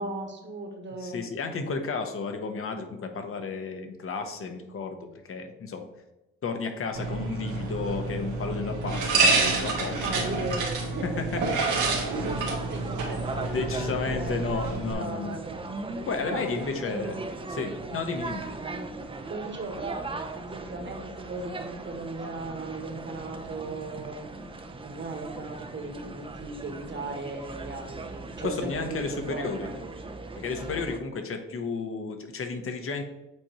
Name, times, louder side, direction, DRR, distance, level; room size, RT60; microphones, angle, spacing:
voice 1, 0.0-1.2 10.0-11.2 11.7-15.6 16.2-17.2 18.6-18.7 19.3-20.0 20.3-24.3 24.8-29.8, right 2 dB, 40° right, 2 dB, 1.4 m, -37 dB
voice 2, 1.0-5.8 6.4-10.1 11.0-11.4 13.5-15.4 16.1-18.5 28.4-29.7 30.4-33.0, left 4 dB, 45° left, 6 dB, 1.0 m, -32 dB
sound 1, 6.9-14.9, right 3 dB, 80° right, 1.5 m, -28 dB
sound 2, 12.1-31.0, right 3 dB, 15° right, 0.6 m, -39 dB
7.8 x 4.3 x 3.0 m, 0.95 s
cardioid pair, 90°, 30 cm